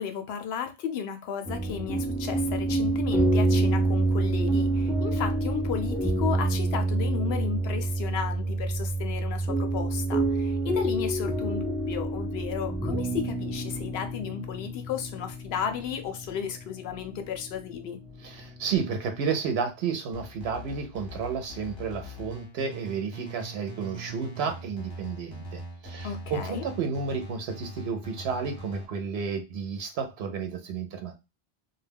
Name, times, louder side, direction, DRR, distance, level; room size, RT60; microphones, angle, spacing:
voice 1, 0.0-18.0 26.0-26.7, left 7 dB, 85° left, 0.8 m, -34 dB
sound 1, 1.4-19.3, right 2 dB, ahead, 0.4 m, -28 dB
voice 2, 18.2-31.1, right 5 dB, 85° right, 0.8 m, -32 dB
sound 2, 20.1-28.9, right 1 dB, 30° left, 1.0 m, -42 dB
2.2 x 2.1 x 3.3 m
omnidirectional pair, 1.0 m